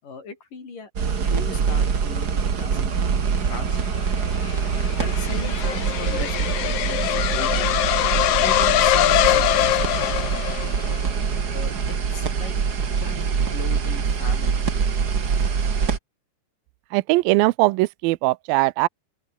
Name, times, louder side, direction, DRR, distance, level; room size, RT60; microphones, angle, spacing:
voice 1, 0.0-4.3 5.0-7.8 8.4-10.6 11.5-11.7 12.1-12.6 13.0-14.6, left 4 dB, 50° left, 8.1 m, -39 dB
sound 1, 1.0-16.0, right 6 dB, 45° right, 1.2 m, -24 dB
sound 2, 4.0-11.1, left 14 dB, 80° left, 1.7 m, -23 dB
voice 2, 16.9-18.9, right 21 dB, 80° right, 2.1 m, -20 dB
open air
omnidirectional pair, 4.7 m